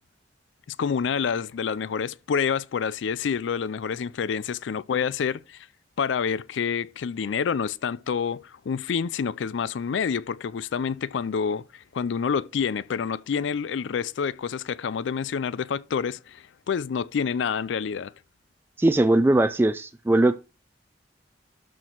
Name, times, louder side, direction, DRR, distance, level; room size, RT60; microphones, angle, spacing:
voice 1, 0.7-5.7 6.0-18.1, left 6 dB, 90° left, 0.4 m, -28 dB
voice 2, 18.8-20.4, right 1 dB, 10° right, 0.3 m, -20 dB
12.5 x 4.4 x 4.5 m
head